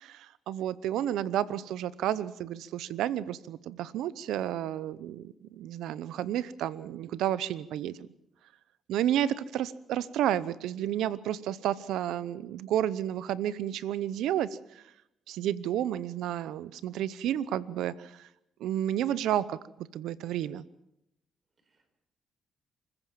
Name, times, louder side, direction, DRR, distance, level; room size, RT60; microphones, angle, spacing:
voice 1, 0.0-8.1 8.9-14.5 14.7-14.8 15.3-18.3 18.6-20.6, right 11 dB, 85° right, 18 dB, 0.8 m, -31 dB
voice 2, 21.6-22.0, equal, 35° right, 8 dB, 4.8 m, -65 dB
25.5 x 15.0 x 7.4 m, 0.82 s
cardioid pair, 90°, 0 cm